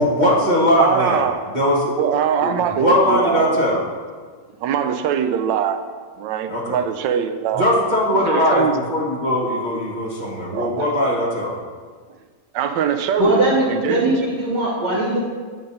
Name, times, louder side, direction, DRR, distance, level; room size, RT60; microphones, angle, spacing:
voice 1, 0.0-1.3 1.5-2.0 2.4-3.8 6.5-6.8 7.5-11.5, equal, 30° right, -8 dB, 1.1 m, -19 dB
voice 2, 0.8-1.4 1.9-3.6 4.6-5.8 6.2-7.7 8.1-8.8 10.5-11.0 12.5-14.1, right 8 dB, 85° right, 8 dB, 1.3 m, -22 dB
voice 3, 13.2-15.2, right 2 dB, 70° right, -4 dB, 2.1 m, -19 dB
8.6 x 3.9 x 5.3 m, 1.5 s
omnidirectional pair, 1.9 m